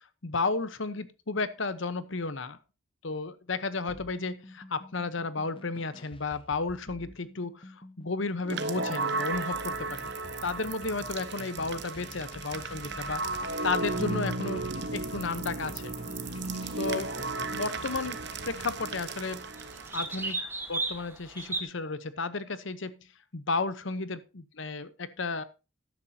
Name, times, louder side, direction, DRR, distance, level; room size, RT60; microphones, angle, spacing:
voice 1, 0.2-2.6 3.0-10.1 10.4-13.2 13.6-15.9 16.8-17.1 17.5-18.2 18.4-19.5 19.9-20.4 20.7-23.0 23.3-25.4, left 3 dB, 70° left, 13 dB, 0.9 m, -33 dB
sound 1, 3.9-18.8, left 1 dB, 25° left, 0.8 m, -48 dB
sound 2, 8.4-20.3, right 3 dB, 55° right, 1.0 m, -35 dB
sound 3, 15.5-21.6, right 3 dB, 10° right, 1.4 m, -39 dB
13.5 x 10.5 x 2.8 m, 0.30 s
head